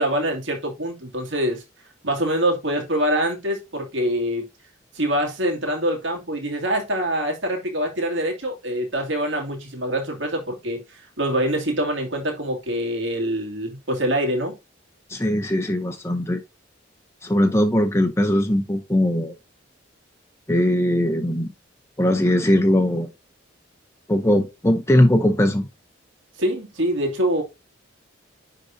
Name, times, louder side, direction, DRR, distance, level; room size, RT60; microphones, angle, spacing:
voice 1, 0.0-1.6 2.0-4.4 4.9-14.5 26.4-27.4, right 1 dB, 70° right, 2.4 m, -25 dB
voice 2, 15.1-16.4 17.2-19.3 20.5-21.5 22.0-23.1 24.1-25.6, left 1 dB, 15° left, 0.6 m, -20 dB
10.0 x 3.8 x 2.7 m
head